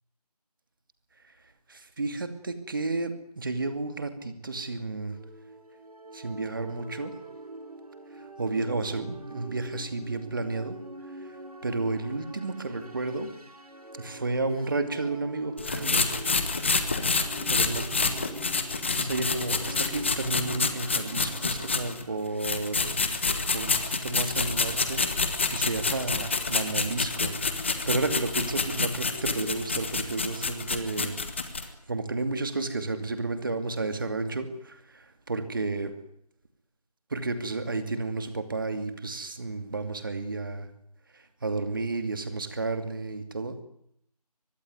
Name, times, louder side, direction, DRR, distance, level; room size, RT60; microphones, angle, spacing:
voice 1, 1.7-5.2 6.1-7.2 8.1-10.8 11.1-13.3 13.9-16.2 17.1-17.9 19.0-23.0 23.3-31.2 31.5-36.0 37.1-40.7 41.1-43.6, right 3 dB, 30° right, 9 dB, 2.5 m, -32 dB
sound 1, 5.0-22.3, right 2 dB, 65° right, 6.2 m, -45 dB
sound 2, 15.6-22.0 22.4-31.6, left 4 dB, 20° left, 1.3 m, -28 dB
24.0 x 20.0 x 9.5 m, 0.72 s
figure-of-eight pair, 170°, 20 cm